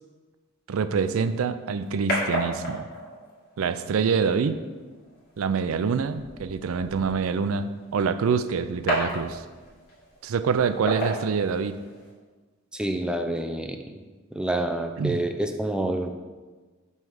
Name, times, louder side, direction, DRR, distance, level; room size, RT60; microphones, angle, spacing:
voice 1, 0.7-2.9 3.6-4.5 5.4-9.4 10.2-11.7 15.0-15.2, right 5 dB, 85° right, 12 dB, 0.4 m, -26 dB
sound 1, 1.1-12.1, right 1 dB, 50° left, 2.4 m, -35 dB
voice 2, 12.7-14.0 14.3-16.1, right 1 dB, 5° right, 5 dB, 0.4 m, -28 dB
5.5 x 4.6 x 6.3 m, 1.3 s
head